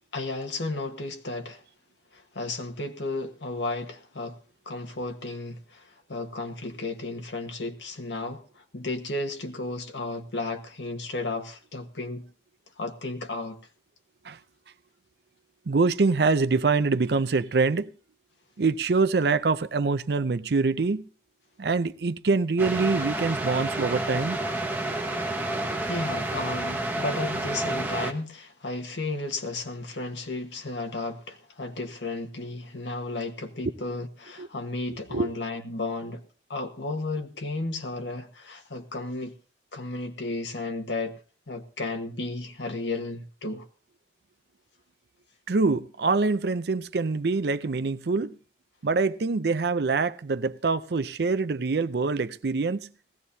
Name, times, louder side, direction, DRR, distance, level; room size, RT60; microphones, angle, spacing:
voice 1, 0.1-1.6 2.1-4.4 4.6-5.8 6.1-12.3 12.8-13.6 25.9-36.2 36.5-39.3 39.7-41.2 41.5-43.6, left 2 dB, 85° left, 1.4 m, -33 dB
voice 2, 15.7-17.9 18.6-21.0 21.6-24.4 34.4-34.5 35.1-35.3 45.5-48.4 48.8-52.9, right 4 dB, 65° right, 0.5 m, -25 dB
sound 1, 22.6-28.1, right 1 dB, 10° right, 1.1 m, -30 dB
19.0 x 15.5 x 2.7 m
head